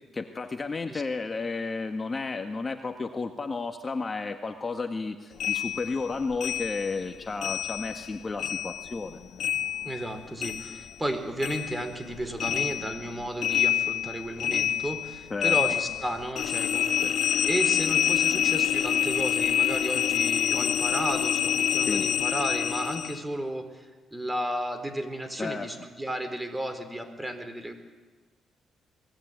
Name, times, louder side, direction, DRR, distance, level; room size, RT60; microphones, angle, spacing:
voice 1, 0.1-9.2 15.3-15.6 21.9-22.1 25.4-25.7, left 4 dB, 30° left, 5 dB, 1.7 m, -32 dB
sound 1, 5.4-8.1 8.4-11.1 11.4-23.2, left 9 dB, 65° left, 1.8 m, -27 dB
voice 2, 9.8-27.7, right 1 dB, 10° right, 8 dB, 4.2 m, -33 dB
27.5 x 21.0 x 9.5 m, 1.3 s
cardioid pair, 90°, 0 cm